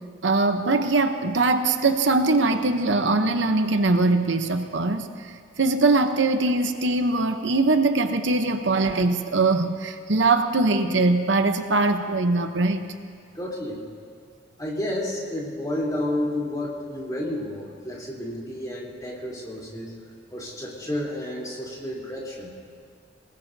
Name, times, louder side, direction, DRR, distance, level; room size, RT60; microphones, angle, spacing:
voice 1, 0.2-12.9, right 3 dB, 75° right, 7 dB, 0.9 m, -22 dB
voice 2, 13.4-13.8 14.6-19.9 20.3-22.5, left 1 dB, 20° left, -5 dB, 3.5 m, -31 dB
26.5 x 19.5 x 2.8 m, 2.1 s
head